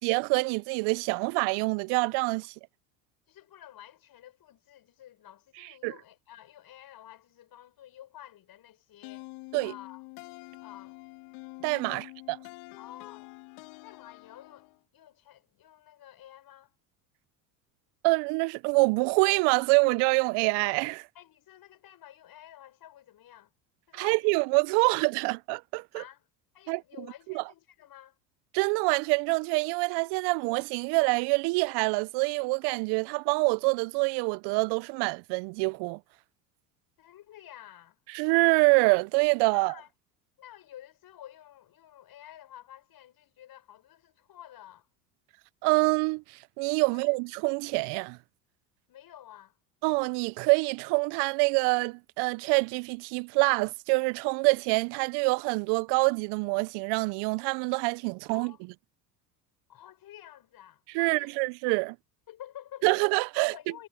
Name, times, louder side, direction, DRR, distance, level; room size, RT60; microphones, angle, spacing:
voice 1, 0.0-2.5 5.8-5.9 9.5-9.7 11.6-12.4 18.0-21.1 23.9-26.0 26.7-26.8 27.3-27.4 28.5-36.0 38.1-39.7 45.6-48.2 49.8-58.5 60.9-62.0 62.8-63.5, right 30 dB, 55° right, 0.7 m, -26 dB
voice 2, 3.3-9.3 9.6-10.0 10.6-11.0 11.9-12.1 12.8-13.3 13.8-16.8 21.2-23.5 23.9-24.3 24.8-25.3 25.9-26.3 26.5-28.2 37.0-38.0 39.5-39.9 40.4-44.9 46.9-47.1 48.9-49.6 58.3-58.6 59.7-61.3 62.3-62.9 63.4-63.9, left 12 dB, 45° left, 7.1 m, -51 dB
sound 1, 9.0-14.8, left 29 dB, 65° left, 2.1 m, -47 dB
hypercardioid pair, 80°, 49 cm